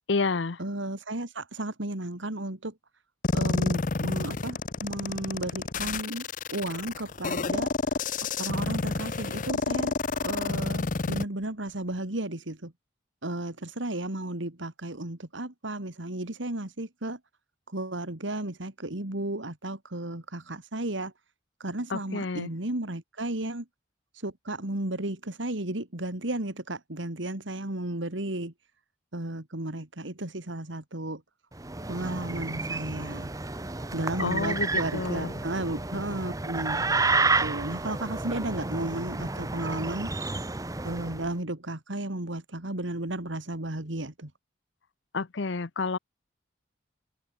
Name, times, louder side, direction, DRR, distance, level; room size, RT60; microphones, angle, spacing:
voice 1, 0.1-0.6 21.9-22.5 34.2-35.3 45.1-46.0, left 4 dB, 75° left, 0.8 m, -29 dB
voice 2, 0.6-2.7 3.3-6.2 6.5-7.7 8.4-9.9 10.2-12.7 13.2-17.2 17.7-21.1 21.6-23.6 24.1-28.5 29.1-31.2 31.9-33.3 33.9-37.0 37.4-40.1 40.8-44.3, right 1 dB, 80° right, 2.6 m, -34 dB
sound 1, 3.2-11.2, left 3 dB, 45° left, 0.6 m, -29 dB
sound 2, 31.5-41.3, right 3 dB, 20° right, 0.9 m, -30 dB
head